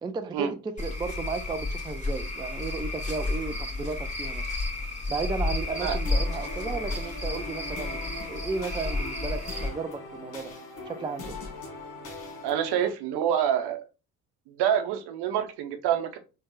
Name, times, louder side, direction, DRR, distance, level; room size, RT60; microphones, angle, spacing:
voice 1, 0.0-4.4 5.1-8.0 8.3-10.5 10.8-11.4, right 4 dB, 10° right, 0.4 m, -34 dB
Cricket / Frog, 0.8-9.7, left 2 dB, 15° left, 1.8 m, -31 dB
sound 1, 6.0-12.9, left 2 dB, 50° left, 1.4 m, -41 dB
voice 2, 12.4-13.8 14.5-16.2, right 9 dB, 55° right, 0.9 m, -26 dB
4.3 x 2.3 x 3.1 m
figure-of-eight pair, 50°, 47 cm